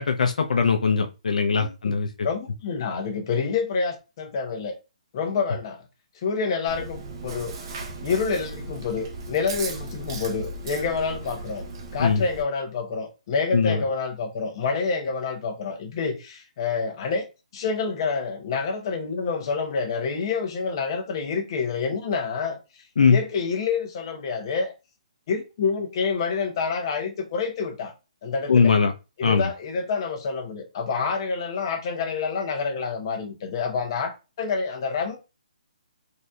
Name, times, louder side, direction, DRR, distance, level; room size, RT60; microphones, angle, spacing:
voice 1, 0.0-2.1 12.0-12.2 13.5-13.8 23.0-23.2 28.5-28.9 29.2-29.4, left 5 dB, 75° left, 0.5 m, -20 dB
voice 2, 1.5-2.0 2.2-4.7 5.1-5.8 6.1-7.5 8.0-11.6 11.9-17.2 17.5-22.6 23.1-24.7 25.3-27.9 28.2-28.7 29.2-35.2, left 5 dB, 35° left, 0.8 m, -28 dB
Chewing mastication, 6.7-12.4, right 3 dB, 35° right, 0.6 m, -36 dB
3.9 x 2.6 x 2.3 m
hypercardioid pair, 165°, 4 cm